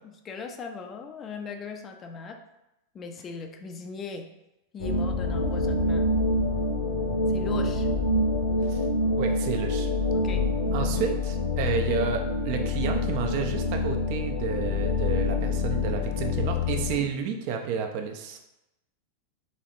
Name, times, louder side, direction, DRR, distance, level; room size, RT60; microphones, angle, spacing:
voice 1, 0.2-2.4 2.9-4.3 4.7-6.1 7.3-7.9 10.1-11.2, left 4 dB, 25° left, 5 dB, 0.4 m, -38 dB
sound 1, 4.8-17.0, left 2 dB, 60° left, 0.9 m, -26 dB
voice 2, 9.2-9.9 10.7-18.4, right 6 dB, 45° right, 4 dB, 0.5 m, -31 dB
4.1 x 3.2 x 2.6 m, 0.91 s
figure-of-eight pair, 90°, 0 cm